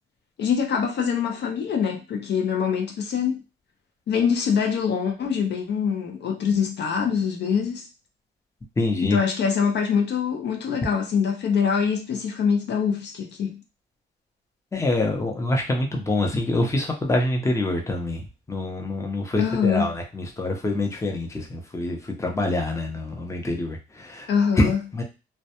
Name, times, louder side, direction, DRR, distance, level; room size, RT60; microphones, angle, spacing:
voice 1, 0.4-3.4 4.1-7.9 9.1-13.6 19.4-19.9 24.3-24.8, left 6 dB, 60° left, 0.5 m, -24 dB
voice 2, 8.8-9.2 14.7-24.3 24.6-25.0, left 2 dB, 15° left, 0.6 m, -25 dB
2.2 x 2.1 x 2.8 m
cardioid pair, 90°, 20 cm